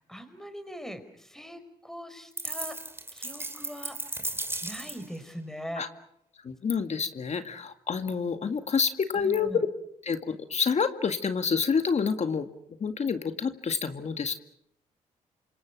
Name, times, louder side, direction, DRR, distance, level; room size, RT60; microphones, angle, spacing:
voice 1, 0.0-2.8 3.1-4.3 4.6-5.8 9.1-9.6, equal, 5° left, 9 dB, 4.9 m, -41 dB
sound 1, 2.4-5.2, right 2 dB, 15° right, 2.8 m, -35 dB
voice 2, 6.4-9.7 10.0-12.5 12.8-14.4, left 6 dB, 50° left, 8 dB, 2.0 m, -28 dB
28.0 x 26.0 x 6.2 m, 0.75 s
supercardioid pair, 65°, 15 cm